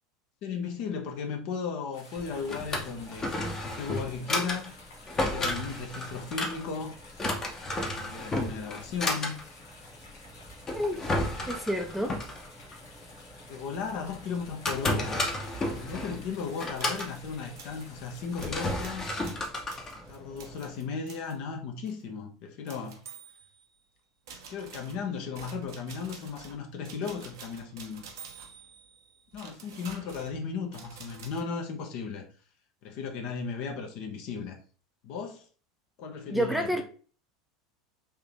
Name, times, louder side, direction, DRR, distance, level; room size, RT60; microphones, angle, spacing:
voice 1, 0.4-4.8 5.2-6.9 7.9-9.4 10.9-11.6 13.5-15.2 15.7-19.2 20.1-23.0 24.5-28.0 29.3-32.2 32.8-34.6 35.0-35.5 36.0-36.8, left 5 dB, 50° left, 0.8 m, -36 dB
sound 1, 1.9-18.8, left 2 dB, 75° left, 1.1 m, -52 dB
Drawer open or close, 2.2-20.7, left 1 dB, 25° left, 0.9 m, -33 dB
voice 2, 11.5-12.2 36.3-36.8, equal, ahead, 0.5 m, -28 dB
sound 2, 16.5-17.2 17.6-17.9 18.4-21.4 21.9-22.0 22.7-23.8 24.3-31.4, right 6 dB, 70° right, 0.8 m, -49 dB
3.6 x 2.9 x 3.4 m
figure-of-eight pair, 80°, 2 cm